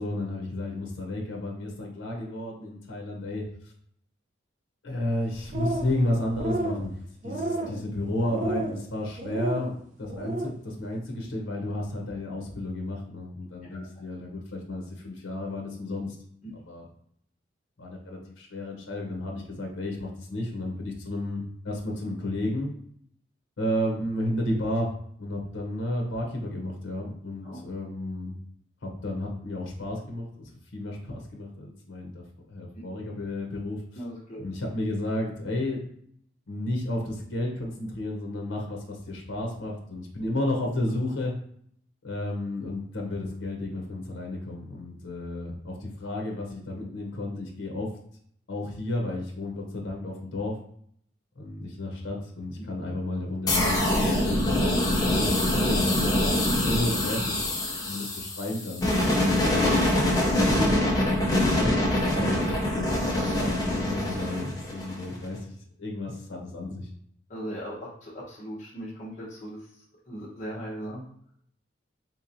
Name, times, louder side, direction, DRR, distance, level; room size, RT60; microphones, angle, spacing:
voice 1, 0.0-3.4 4.8-6.9 7.2-16.2 16.7-16.9 17.8-22.7 23.6-24.9 25.2-28.4 28.8-33.8 34.4-35.8 36.5-41.3 42.0-47.9 48.5-50.6 51.4-57.4 57.8-58.9 59.1-59.8 60.3-65.4 65.8-66.9, left 1 dB, 85° left, 1 dB, 0.7 m, -32 dB
sound 1, 5.3-6.0 6.3-6.8 7.2-7.8 8.3-8.8 9.2-9.6 10.1-10.5, right 2 dB, 40° right, 0.5 m, -31 dB
voice 2, 33.9-34.4 67.3-69.6 70.1-71.1, equal, 40° left, -7 dB, 0.9 m, -38 dB
sound 2, 53.5-65.3, left 1 dB, 20° left, 0.5 m, -24 dB
3.5 x 2.9 x 2.5 m, 0.65 s
head